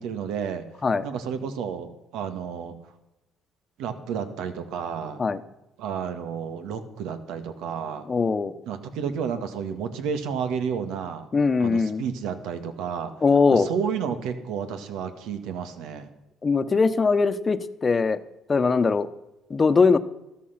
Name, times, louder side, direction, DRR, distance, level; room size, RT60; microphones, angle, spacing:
voice 1, 0.0-0.6 1.0-2.7 3.8-5.2 5.8-8.1 8.7-11.3 11.6-13.1 13.5-16.1, right 7 dB, 85° right, 9 dB, 1.8 m, -31 dB
voice 2, 8.1-8.5 11.3-12.0 13.2-13.7 16.4-18.2 18.5-19.1 19.5-20.0, left 4 dB, 30° left, 12 dB, 1.0 m, -21 dB
14.0 x 13.5 x 5.9 m, 0.95 s
cardioid pair, 95°, 0 cm